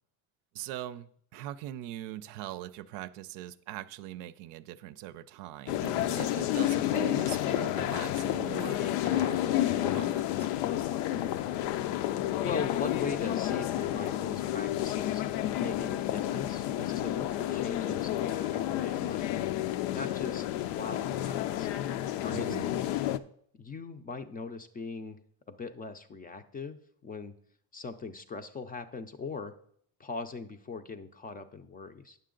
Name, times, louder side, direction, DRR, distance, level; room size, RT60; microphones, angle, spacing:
voice 1, 0.5-10.5 22.3-22.7, right 13 dB, 75° right, 0.6 m, -41 dB
sound 1, 5.7-23.2, left 13 dB, 80° left, 0.6 m, -30 dB
voice 2, 11.0-11.4 12.4-15.2 15.6-19.3 19.9-21.8 22.2-22.8 23.5-25.2 25.5-27.3 27.7-29.5 30.0-32.2, left 4 dB, 20° left, 0.4 m, -40 dB
9.3 x 6.6 x 3.8 m
cardioid pair, 120°, 42 cm